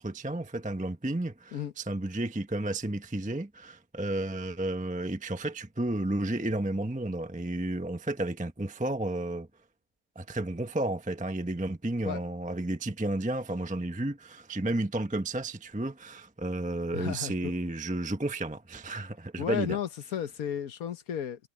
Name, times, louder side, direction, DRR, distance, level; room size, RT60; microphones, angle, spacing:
voice 1, 0.0-9.5 10.2-19.8, right 1 dB, 10° right, 0.6 m, -32 dB
voice 2, 16.9-17.5 19.4-21.5, left 9 dB, 60° left, 1.3 m, -34 dB
omnidirectional pair, 1.8 m